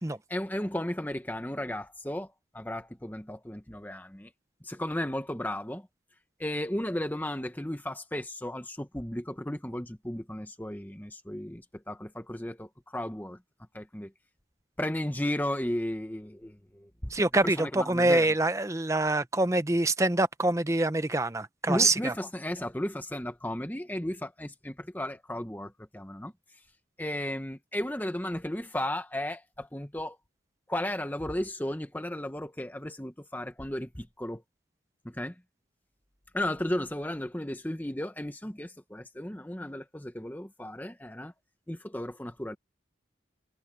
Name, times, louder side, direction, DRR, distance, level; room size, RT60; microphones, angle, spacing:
voice 1, 0.3-4.3 4.6-5.9 6.4-13.4 13.7-14.1 14.8-17.1 17.4-18.3 21.7-26.6 27.0-30.2 30.7-34.4 35.0-35.4 36.3-41.3 41.7-42.6, left 1 dB, 10° left, 1.0 m, -34 dB
voice 2, 17.1-22.1, right 2 dB, 15° right, 0.7 m, -25 dB
head